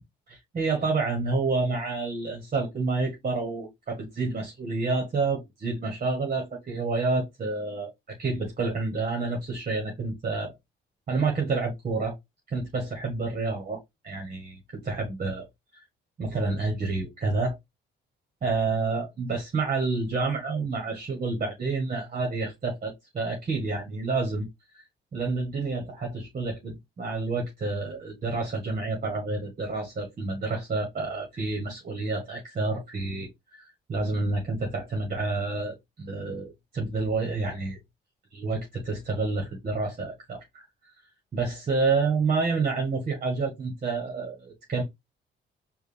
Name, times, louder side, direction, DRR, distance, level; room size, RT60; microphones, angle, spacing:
voice 1, 0.3-10.5 11.1-12.1 12.5-15.4 15.7-15.8 16.2-17.5 18.4-24.5 24.7-24.8 25.1-37.8 38.3-40.6 41.3-44.8, right 3 dB, 40° right, 1.5 m, -29 dB
4.8 x 2.6 x 3.4 m
cardioid pair, 90°, 20 cm